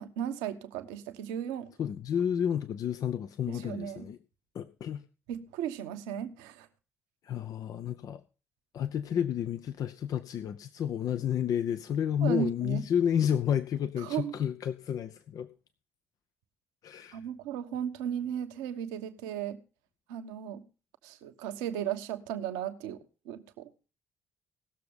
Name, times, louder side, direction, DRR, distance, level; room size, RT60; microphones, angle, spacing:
voice 1, 0.0-1.7 3.5-4.1 5.3-6.7 12.2-12.8 14.0-14.4 17.1-19.6 20.1-20.6 21.0-23.0 23.2-23.7, right 9 dB, 75° right, 1.1 m, -35 dB
voice 2, 1.8-4.2 4.5-5.0 7.2-8.2 8.7-15.5 16.8-17.2, left 9 dB, 55° left, 0.7 m, -31 dB
18.0 x 6.9 x 5.1 m
figure-of-eight pair, 45°, 7 cm